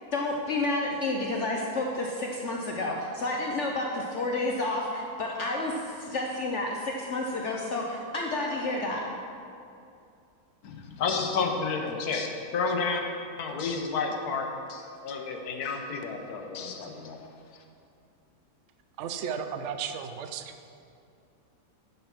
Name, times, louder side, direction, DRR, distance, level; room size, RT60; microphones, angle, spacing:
voice 1, 0.1-9.2, left 2 dB, 55° left, 0 dB, 1.0 m, -30 dB
voice 2, 10.6-13.0 13.4-17.2 17.5-17.6, left 4 dB, 75° left, 4 dB, 1.4 m, -31 dB
voice 3, 19.0-20.7, right 7 dB, 60° right, 8 dB, 0.8 m, -34 dB
10.5 x 5.7 x 5.9 m, 2.5 s
omnidirectional pair, 1.7 m